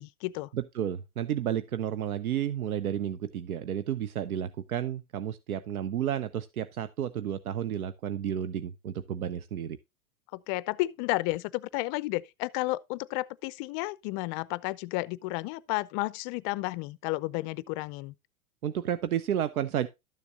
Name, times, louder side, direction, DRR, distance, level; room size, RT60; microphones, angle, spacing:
voice 1, 0.0-0.5 10.3-18.1, left 20 dB, 35° left, 0.5 m, -32 dB
voice 2, 0.5-9.8 18.6-19.9, right 10 dB, 85° right, 0.7 m, -31 dB
12.5 x 6.9 x 2.5 m
hypercardioid pair, 105°, 42 cm